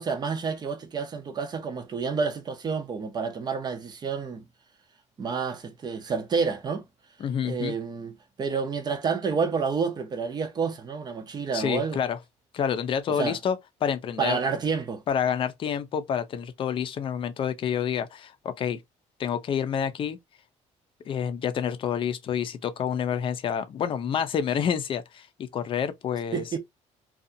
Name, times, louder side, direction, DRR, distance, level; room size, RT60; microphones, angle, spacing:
voice 1, 0.0-4.4 5.2-6.8 7.4-12.0 13.2-13.4 14.2-15.0 26.3-26.6, right 5 dB, 35° right, 0.5 m, -29 dB
voice 2, 7.2-7.8 11.5-12.2 12.5-14.4 15.1-18.8 19.2-20.2 21.1-26.4, left 8 dB, 45° left, 0.5 m, -28 dB
2.6 x 2.3 x 2.6 m
cardioid pair, 130°, 13 cm